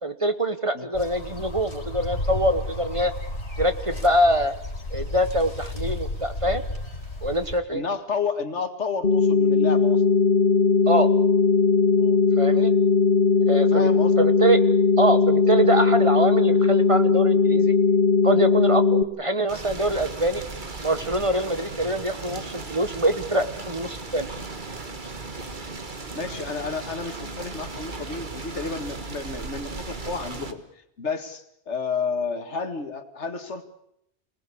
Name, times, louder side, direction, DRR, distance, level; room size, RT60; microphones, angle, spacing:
voice 1, 0.0-3.1 3.6-4.5 4.9-6.6 7.2-7.8 10.9-11.1 12.4-12.7 13.4-13.9 14.2-14.6 15.0-17.7 18.2-20.4 20.8-24.3, right 1 dB, 30° right, 10 dB, 1.3 m, -24 dB
sound 1, 0.9-7.6, left 1 dB, 70° left, 4.2 m, -33 dB
voice 2, 7.7-10.2 12.0-12.2 13.7-14.2 26.1-33.6, left 5 dB, 85° left, 8 dB, 2.2 m, -31 dB
sound 2, 9.0-19.0, left 5 dB, 55° left, 2.0 m, -19 dB
sound 3, 19.5-30.5, right 3 dB, 45° right, 1.8 m, -36 dB
25.5 x 18.5 x 8.5 m, 0.76 s
omnidirectional pair, 1.2 m